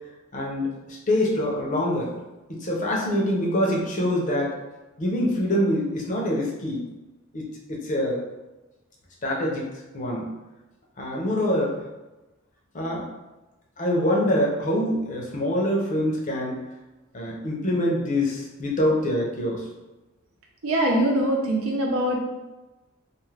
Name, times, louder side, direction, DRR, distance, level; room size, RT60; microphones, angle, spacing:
voice 1, 0.3-2.1 2.5-4.5 5.0-6.8 7.3-8.2 9.2-9.7 9.9-10.3 11.0-11.7 12.7-13.1 13.8-16.6 17.1-19.7, left 1 dB, 35° left, -2 dB, 0.6 m, -25 dB
voice 2, 20.6-22.2, right 1 dB, 80° right, -1 dB, 0.7 m, -22 dB
2.5 x 2.4 x 3.2 m, 1.1 s
head